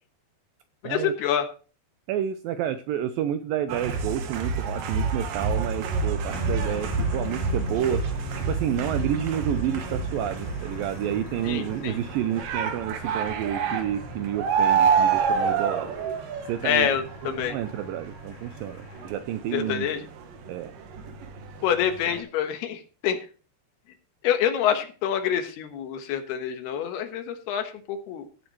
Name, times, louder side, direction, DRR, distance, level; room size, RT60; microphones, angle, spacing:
voice 1, 0.8-1.5 11.4-12.0 16.6-17.6 19.5-20.0 21.6-23.2 24.2-28.3, left 9 dB, 80° left, 7 dB, 3.2 m, -26 dB
voice 2, 2.1-8.0 8.5-15.9 16.5-16.9 17.2-19.9 20.5-20.7, right 10 dB, 80° right, 10 dB, 2.1 m, -30 dB
sound 1, 3.7-20.5 20.8-22.2, right 5 dB, 65° right, 2.7 m, -28 dB
sound 2, 6.3-19.1, left 2 dB, 30° left, 3.3 m, -40 dB
16.5 x 7.8 x 3.1 m, 0.35 s
omnidirectional pair, 4.6 m